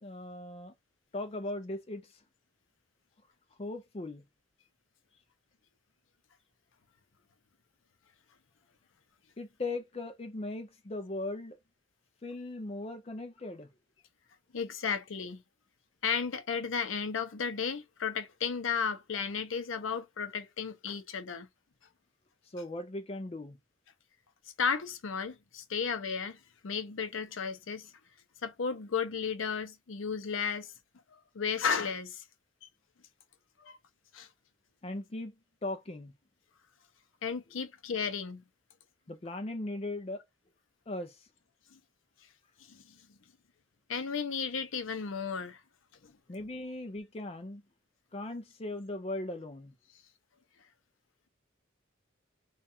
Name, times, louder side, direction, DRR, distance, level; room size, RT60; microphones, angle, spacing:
voice 1, 0.0-0.7 1.1-2.2 3.6-4.2 9.4-11.6 12.2-13.7 22.5-23.6 34.8-35.4 35.6-36.1 39.1-40.2 40.9-41.3 46.3-47.6 48.1-49.7, left 2 dB, 30° left, 0.5 m, -38 dB
voice 2, 14.5-15.4 16.0-21.5 24.6-27.9 28.4-30.7 31.1-32.2 33.6-33.8 34.1-34.3 37.2-38.4 41.7-41.8 42.7-42.8 43.9-45.6 46.0-46.1, left 6 dB, 80° left, 0.6 m, -34 dB
3.5 x 2.4 x 4.2 m
head